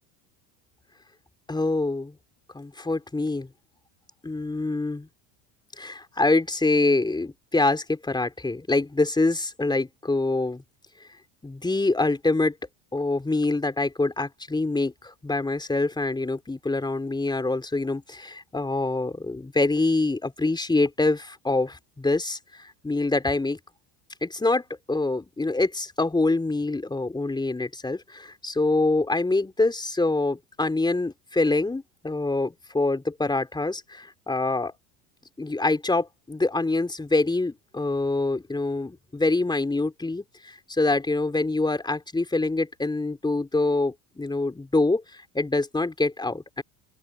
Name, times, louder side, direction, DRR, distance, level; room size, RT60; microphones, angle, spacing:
voice 1, 1.5-2.2 2.5-3.5 4.2-5.1 5.8-10.6 11.4-12.5 12.9-23.6 24.2-24.6 24.9-34.7 35.4-46.6, left 2 dB, 10° left, 4.0 m, -25 dB
open air
supercardioid pair, 115°, 44 cm